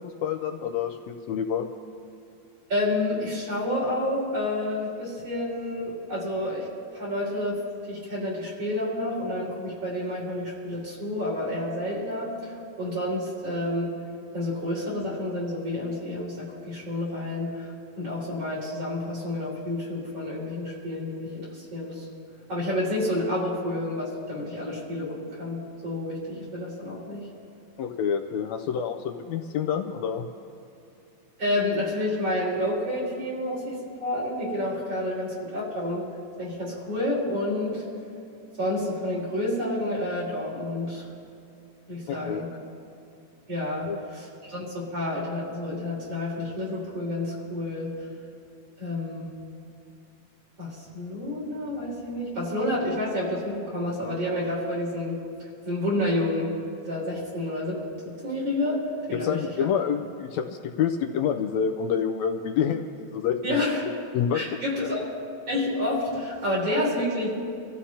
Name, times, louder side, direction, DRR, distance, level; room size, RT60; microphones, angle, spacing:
voice 1, 0.0-1.7 27.8-30.2 42.1-42.5 43.9-44.0 59.1-63.6 64.1-64.9, left 7 dB, 80° left, 5 dB, 1.6 m, -28 dB
voice 2, 2.7-6.7 6.9-13.9 14.3-17.7 18.0-22.1 22.5-25.6 25.8-27.3 31.4-36.0 36.4-37.8 38.6-41.0 41.9-42.5 43.5-47.9 48.8-49.3 50.6-55.2 55.6-56.5 56.8-57.8 58.2-58.8 59.1-59.7 63.4-63.8 64.3-65.1 65.5-67.3, left 1 dB, 50° right, -8 dB, 5.9 m, -29 dB
27.5 x 14.5 x 2.9 m, 2.6 s
omnidirectional pair, 3.6 m